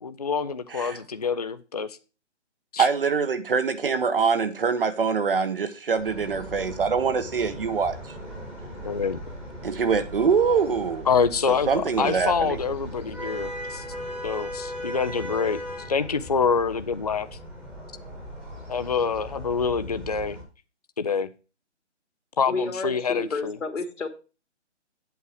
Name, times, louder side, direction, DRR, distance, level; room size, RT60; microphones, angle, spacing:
voice 1, 0.0-2.0 2.7-2.9 8.8-9.2 11.1-13.8 14.2-15.6 15.9-17.3 18.7-20.4 21.0-21.3 22.4-23.6, left 5 dB, 35° left, 11 dB, 0.4 m, -26 dB
voice 2, 2.8-7.9 9.6-11.1 11.5-12.6, right 5 dB, 50° right, 10 dB, 1.0 m, -24 dB
sound 1, 6.0-20.4, equal, 5° right, 1.2 m, -38 dB
voice 3, 22.5-24.1, left 3 dB, 85° left, 7 dB, 2.4 m, -30 dB
8.4 x 7.2 x 4.7 m, 0.32 s
hypercardioid pair, 165°, 36 cm